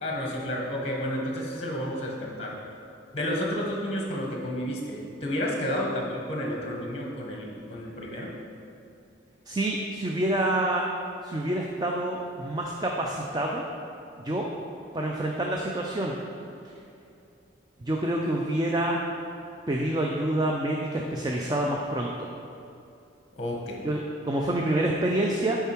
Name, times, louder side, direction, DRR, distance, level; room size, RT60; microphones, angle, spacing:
voice 1, 0.0-2.5 3.1-8.3 23.4-23.8, equal, 30° left, -1 dB, 1.0 m, -31 dB
voice 2, 9.5-10.8 11.2-13.6 14.2-14.4 14.9-16.2 17.8-19.0 19.7-22.3 23.8-25.6, right 1 dB, 20° right, 0 dB, 0.4 m, -27 dB
6.8 x 4.6 x 4.4 m, 2.6 s
head